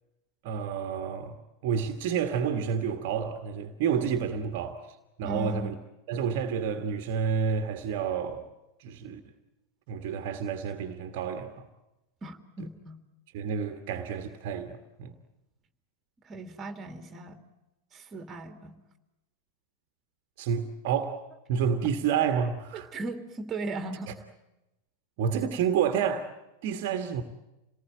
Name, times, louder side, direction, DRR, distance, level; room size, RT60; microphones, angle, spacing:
voice 1, 0.4-1.4 1.6-4.8 5.2-5.7 6.1-8.4 8.8-9.2 9.9-11.7 13.3-15.1 20.4-21.2 21.5-22.9 25.2-26.3 26.6-27.2, right 7 dB, 50° right, 1.7 m, -29 dB
voice 2, 5.2-5.7 12.2-13.0 16.2-17.4 17.9-18.8 22.7-24.1, right 2 dB, 20° right, 2.7 m, -37 dB
28.0 x 19.0 x 8.9 m
figure-of-eight pair, 90°, 0 cm